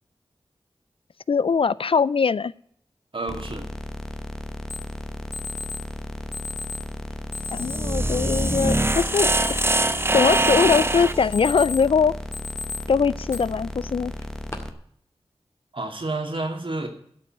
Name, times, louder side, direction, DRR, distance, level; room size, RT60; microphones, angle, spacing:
voice 1, 1.3-2.5 7.5-9.9 10.1-12.1 12.9-14.1, left 5 dB, 60° left, 20 dB, 0.3 m, -22 dB
voice 2, 3.1-3.7 15.7-16.9, right 2 dB, 55° right, 4 dB, 2.3 m, -30 dB
sound 1, 3.3-14.7, left 1 dB, 5° left, 1.0 m, -35 dB
Alarm, 4.7-4.8 5.3-5.8 6.3-6.8 7.3-7.8 8.3-8.8 9.2-9.9 10.3-10.8 11.2-11.9 12.3-12.8 13.3-13.4 14.2-14.5, left 4 dB, 25° left, 2.1 m, -34 dB
sound 2, 7.4-11.3, right 2 dB, 25° right, 0.7 m, -23 dB
12.5 x 5.4 x 9.0 m, 0.67 s
wide cardioid pair, 50°, 10 cm